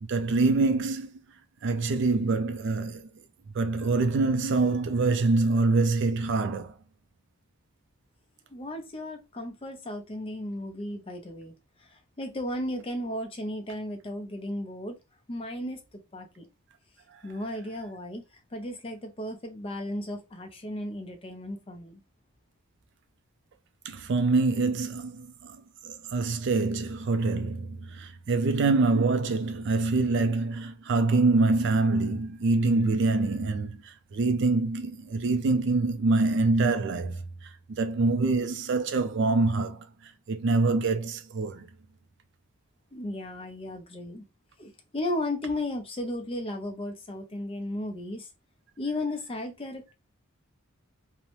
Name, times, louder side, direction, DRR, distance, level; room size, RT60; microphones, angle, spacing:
voice 1, 0.0-1.1 1.6-3.1 3.5-6.7 23.9-25.6 25.8-37.2 37.7-39.9 40.3-41.7, right 3 dB, 50° right, 0.3 m, -25 dB
voice 2, 8.5-11.5 11.8-15.0 15.3-16.5 17.2-18.2 18.5-22.0 42.9-44.2 44.6-48.3 48.8-49.9, left 1 dB, 25° left, 0.5 m, -35 dB
2.7 x 2.1 x 3.0 m
head